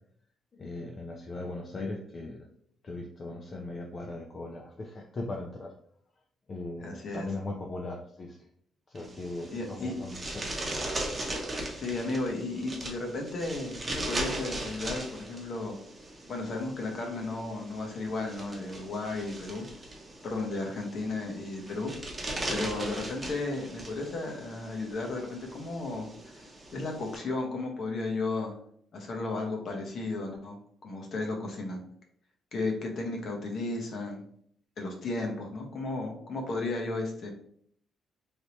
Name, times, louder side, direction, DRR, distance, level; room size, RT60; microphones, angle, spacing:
voice 1, 0.6-2.5 2.8-5.7 6.5-8.4 8.9-10.5, left 2 dB, 40° left, 0 dB, 0.5 m, -39 dB
voice 2, 6.8-7.3 9.5-9.9 11.7-15.8 16.3-19.6 20.2-21.9 22.5-28.6 28.9-31.8 32.5-34.2 34.8-37.3, left 2 dB, 60° left, 2 dB, 0.9 m, -34 dB
sound 1, 9.0-27.2, right 1 dB, 25° right, 0.8 m, -39 dB
3.3 x 2.8 x 2.9 m, 0.65 s
cardioid pair, 90°, 0 cm